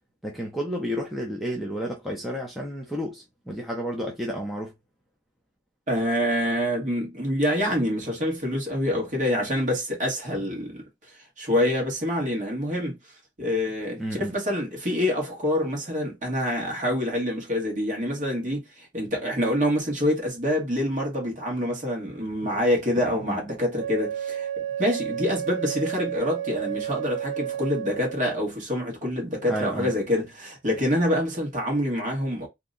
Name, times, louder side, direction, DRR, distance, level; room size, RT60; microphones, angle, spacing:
voice 1, 0.2-4.7 14.0-14.3 23.1-23.4 29.5-29.9, equal, ahead, 0.5 m, -31 dB
voice 2, 5.9-10.8 11.4-13.0 13.4-24.5 24.8-32.5, left 1 dB, 40° right, 1.3 m, -26 dB
Wind instrument woodwind instrument, 23.7-28.4, right 10 dB, 60° right, 1.0 m, -31 dB
2.8 x 2.1 x 3.7 m
head